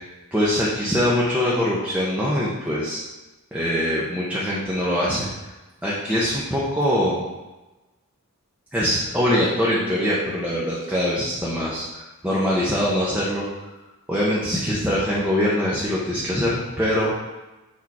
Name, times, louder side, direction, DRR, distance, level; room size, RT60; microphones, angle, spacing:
voice 1, 0.3-3.0 3.5-5.3 5.8-7.2 8.7-13.5 14.1-17.1, equal, 5° right, -7 dB, 1.1 m, -23 dB
6.6 x 4.5 x 4.8 m, 1.1 s
head